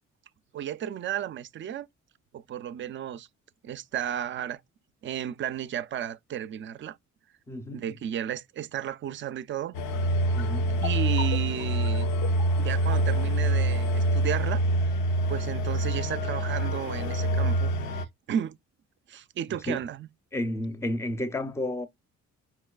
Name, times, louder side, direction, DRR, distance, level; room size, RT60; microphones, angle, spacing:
voice 1, 0.5-1.9 2.3-3.3 3.6-4.6 5.0-7.0 7.7-9.8 10.8-12.2 12.6-14.6 15.3-18.6 19.1-20.1, right 10 dB, 40° right, 0.4 m, -33 dB
voice 2, 7.5-8.0 10.3-10.8 19.7-19.8 20.3-21.9, left 1 dB, 10° left, 0.5 m, -32 dB
sound 1, 9.7-18.0, right 1 dB, 90° left, 0.6 m, -26 dB
5.3 x 2.2 x 2.3 m
cardioid pair, 90°, 30 cm